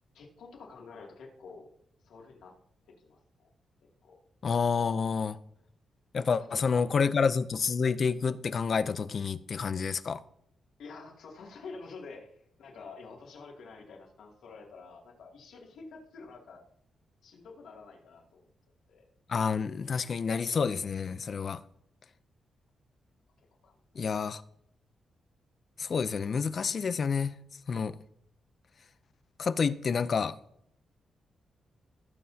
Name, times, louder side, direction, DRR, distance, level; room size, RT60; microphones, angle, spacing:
voice 1, 0.1-1.7 2.0-2.5 2.9-3.5 4.0-4.2 6.1-6.2 6.6-6.8 10.8-12.3 12.6-16.6 17.2-18.5 18.9-19.0 23.6-24.0, left 4 dB, 90° left, 2.5 m, -48 dB
voice 2, 4.4-5.4 6.1-10.2 19.3-21.6 24.0-24.4 25.8-27.3 27.7-28.0 29.4-30.3, left 5 dB, 40° left, 0.5 m, -29 dB
17.0 x 7.6 x 2.8 m
wide cardioid pair, 150°, 0 cm